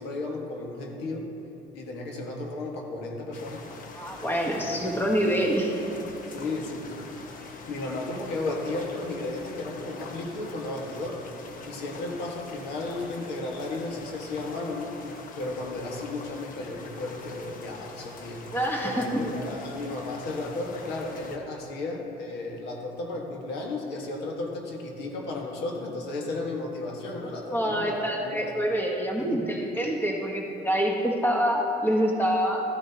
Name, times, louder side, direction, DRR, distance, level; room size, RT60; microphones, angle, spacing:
voice 1, 0.0-1.3 1.7-3.6 4.6-4.8 6.3-6.9 7.7-11.2 11.7-18.4 18.8-28.5 29.2-29.4, left 2 dB, 85° left, 0 dB, 1.6 m, -34 dB
sound 1, 3.3-21.4, left 3 dB, 55° left, 1.1 m, -44 dB
voice 2, 3.9-5.8 18.5-19.2 27.5-32.6, equal, 10° left, 0 dB, 1.3 m, -26 dB
14.0 x 10.5 x 2.9 m, 2.9 s
cardioid pair, 110°, 17 cm